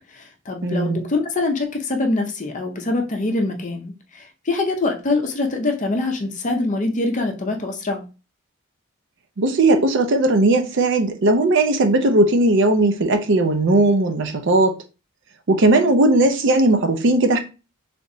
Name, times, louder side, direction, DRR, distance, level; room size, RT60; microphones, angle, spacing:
voice 1, 0.1-8.1, left 2 dB, 35° left, 0.6 m, -24 dB
voice 2, 0.6-1.0 9.4-14.8 15.5-17.4, right 2 dB, 60° right, 0.5 m, -17 dB
3.3 x 2.9 x 2.6 m
head